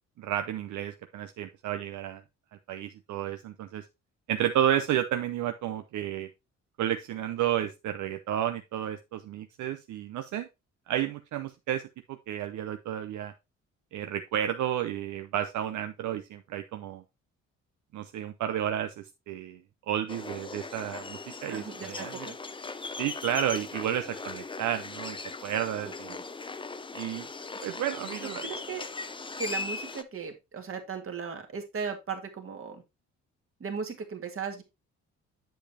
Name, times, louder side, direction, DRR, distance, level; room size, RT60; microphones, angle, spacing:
voice 1, 0.2-2.2 2.7-3.8 4.3-6.3 6.8-10.5 10.9-11.8 12.1-13.3 13.9-17.0 17.9-19.6 19.9-22.3 23.0-25.2 25.4-26.2 26.9-27.3 27.6-28.4, right 10 dB, 75° right, 8 dB, 0.6 m, -31 dB
sound 1, 20.1-30.0, left 4 dB, 15° left, 0.6 m, -39 dB
voice 2, 21.5-22.3 26.1-26.2 28.2-28.9 29.4-32.8 33.6-34.6, right 5 dB, 45° right, 5 dB, 2.0 m, -37 dB
7.9 x 6.8 x 2.8 m, 0.23 s
cardioid pair, 90°, 30 cm